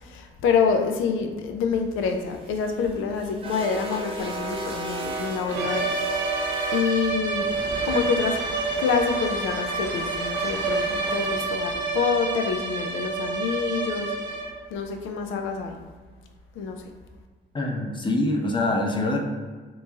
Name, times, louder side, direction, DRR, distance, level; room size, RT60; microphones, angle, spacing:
voice 1, 0.0-6.3 6.7-8.4 8.8-14.1 14.7-15.8 16.6-16.8, left 5 dB, 85° left, 5 dB, 0.5 m, -27 dB
sound 1, 2.2-14.4, right 2 dB, 25° right, 0.6 m, -37 dB
sound 2, 5.5-14.7, right 3 dB, 65° right, 0.7 m, -28 dB
voice 2, 17.5-19.2, left 2 dB, 25° left, 0 dB, 0.6 m, -24 dB
3.0 x 2.6 x 3.5 m, 1.4 s
cardioid pair, 90°, 20 cm